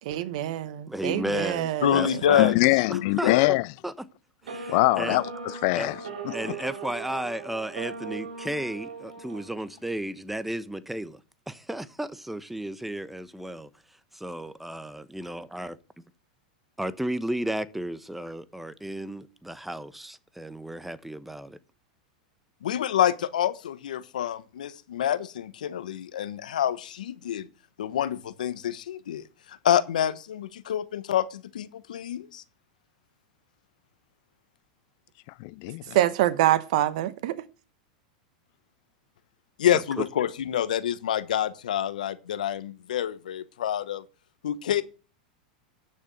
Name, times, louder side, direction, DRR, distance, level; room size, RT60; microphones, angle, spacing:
voice 1, 0.0-2.2 35.9-37.4, right 13 dB, 65° right, 1.0 m, -25 dB
voice 2, 0.9-2.6 2.9-3.4 3.8-3.9 4.4-5.2 5.7-5.9 6.3-11.2 11.5-13.7 14.1-15.7 16.8-21.6 39.7-40.1, right 1 dB, 5° right, 0.9 m, -33 dB
voice 3, 1.8-2.6 2.9-3.6 22.6-27.5 27.8-32.4 39.6-44.0 44.4-44.8, left 10 dB, 80° left, 1.1 m, -27 dB
voice 4, 2.4-3.6 4.7-6.0 6.3-6.6 35.4-36.0, left 24 dB, 55° left, 0.4 m, -23 dB
sound 1, 4.4-10.0, right 4 dB, 85° right, 5.0 m, -39 dB
9.8 x 6.6 x 7.7 m
hypercardioid pair, 110°, 4 cm